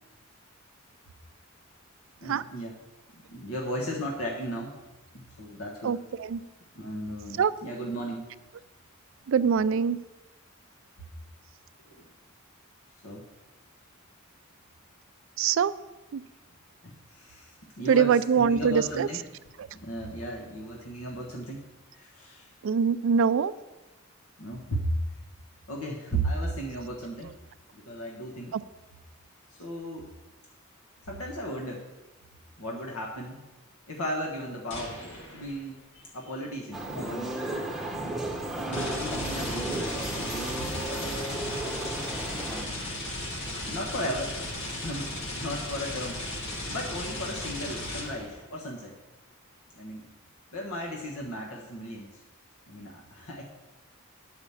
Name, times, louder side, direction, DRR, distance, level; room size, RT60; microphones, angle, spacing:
voice 1, 2.2-2.7 3.3-4.7 5.4-6.0 6.7-8.3 11.9-12.0 13.0-13.2 16.8-19.2 19.8-21.6 22.0-22.5 24.4-24.9 25.7-27.3 27.7-28.5 29.6-30.1 31.1-31.8 32.6-33.4 33.9-35.0 35.3-37.3 38.6-40.0 40.8-41.3 42.5-42.9 43.6-44.3 44.8-46.2 46.7-48.9 49.8-50.0 50.5-52.1 52.7-53.4, right 1 dB, 85° left, -2 dB, 1.3 m, -35 dB
voice 2, 5.8-6.4 7.4-7.5 9.3-10.0 15.4-15.8 16.1-16.2 17.9-19.1 22.6-23.5 28.5-28.6, right 6 dB, 65° right, 15 dB, 0.4 m, -23 dB
sound 1, 34.7-35.7 38.7-48.5, left 1 dB, 60° left, 1.9 m, -36 dB
sound 2, 36.7-42.6, right 1 dB, ahead, 0.9 m, -34 dB
9.8 x 5.0 x 7.0 m, 1.1 s
head